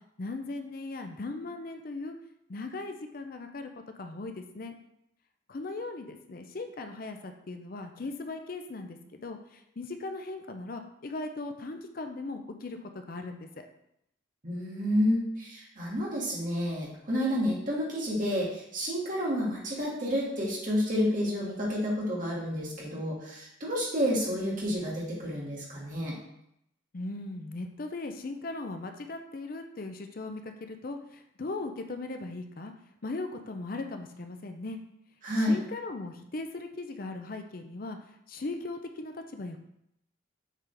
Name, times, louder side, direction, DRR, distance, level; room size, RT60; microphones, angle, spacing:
voice 1, 0.2-2.2 2.5-4.7 5.5-13.7 26.9-32.7 33.0-34.8 35.4-38.0 38.3-39.6, left 2 dB, 45° left, 6 dB, 0.5 m, -38 dB
voice 2, 14.4-26.1 35.2-35.6, equal, 40° right, -5 dB, 1.8 m, -30 dB
7.3 x 3.8 x 3.4 m, 0.78 s
head